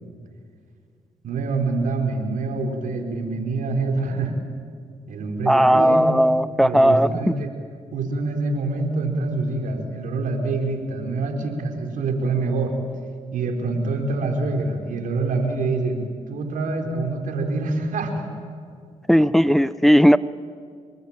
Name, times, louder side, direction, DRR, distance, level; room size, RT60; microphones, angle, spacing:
voice 1, 1.2-4.3 5.1-6.0 6.6-7.5 7.9-12.8 13.3-16.0 16.3-18.3 19.4-19.6, right 3 dB, 75° right, 4 dB, 4.6 m, -25 dB
voice 2, 5.5-7.1 19.1-20.2, equal, ahead, 16 dB, 0.7 m, -16 dB
27.0 x 23.5 x 9.0 m, 2.2 s
supercardioid pair, 65°, 14 cm